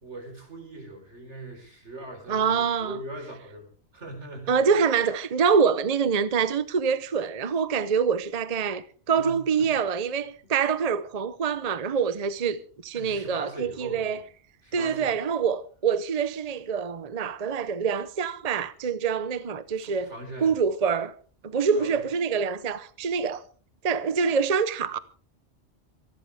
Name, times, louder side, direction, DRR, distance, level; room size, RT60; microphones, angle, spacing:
voice 1, 0.0-4.8 9.2-10.0 12.9-14.2 14.6-15.2 19.8-20.6 21.7-22.0, right 1 dB, 85° right, 4.8 m, -41 dB
voice 2, 2.3-3.0 4.5-14.2 14.7-20.1 20.4-21.1 21.4-23.4 23.8-25.0, right 6 dB, 40° right, 0.8 m, -25 dB
26.0 x 11.5 x 3.5 m
omnidirectional pair, 1.2 m